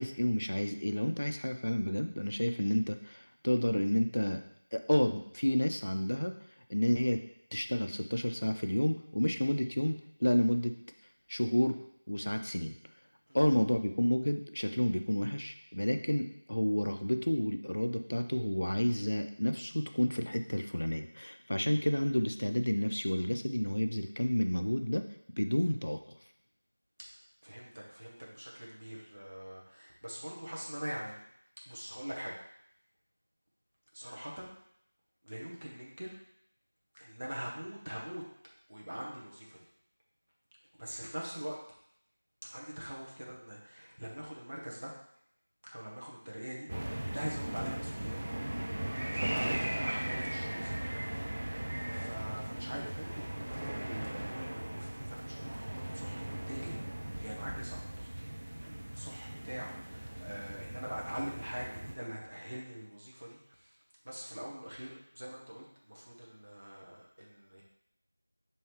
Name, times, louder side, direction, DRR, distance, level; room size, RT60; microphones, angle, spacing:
voice 1, 0.0-4.4 4.7-6.3 6.7-7.2 7.5-10.7 11.3-11.7 12.1-12.7 13.3-25.0 25.4-26.0, equal, 75° left, 6 dB, 0.4 m, -30 dB
voice 2, 27.4-31.2 31.7-32.3 33.9-34.5 35.2-36.1 36.9-38.2 38.7-39.6 40.8-41.5 42.4-44.9 45.6-48.2 49.1-56.8 57.1-58.3 58.6-63.7 64.0-67.6, equal, 50° right, -3 dB, 1.1 m, -43 dB
sound 1, 46.7-61.9, right 1 dB, 30° right, 0.4 m, -38 dB
4.5 x 3.1 x 3.1 m, 0.72 s
figure-of-eight pair, 180°, 0 cm